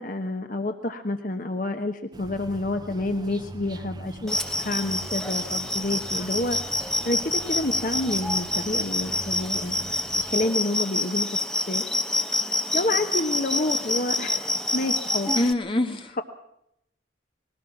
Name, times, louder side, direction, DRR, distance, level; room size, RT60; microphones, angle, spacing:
voice 1, 0.0-6.6 7.0-9.7 10.3-11.4 11.7-11.8 12.7-15.5, left 2 dB, 45° left, 6 dB, 1.1 m, -29 dB
sound 1, 2.1-10.5, right 2 dB, 25° right, 0.7 m, -42 dB
sound 2, 4.3-15.5, left 2 dB, 5° left, 0.9 m, -27 dB
voice 2, 15.3-16.2, left 1 dB, 30° left, 6 dB, 1.6 m, -25 dB
21.0 x 18.0 x 7.3 m, 0.77 s
head